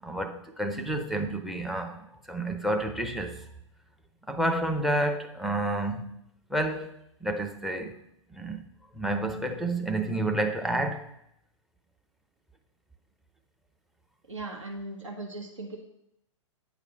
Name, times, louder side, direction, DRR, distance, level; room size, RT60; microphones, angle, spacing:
voice 1, 0.0-3.4 4.3-6.2 6.5-6.9 7.2-8.0 8.3-8.6 8.9-11.1, right 1 dB, ahead, 0.6 m, -30 dB
voice 2, 14.3-15.8, right 2 dB, 70° right, 1.5 m, -38 dB
8.4 x 5.0 x 5.6 m
figure-of-eight pair, 110°, 16 cm